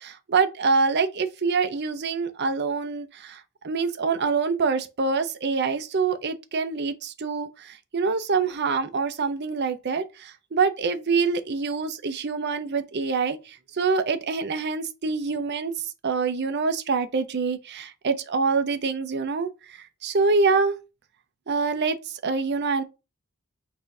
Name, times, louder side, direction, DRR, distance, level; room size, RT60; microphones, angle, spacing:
voice 1, 0.3-3.4 3.6-7.5 7.9-13.4 13.8-15.7 16.0-19.5 20.0-20.8 21.5-22.0 22.2-22.8, right 4 dB, 50° right, 0.6 m, -25 dB
4.1 x 2.7 x 4.7 m
head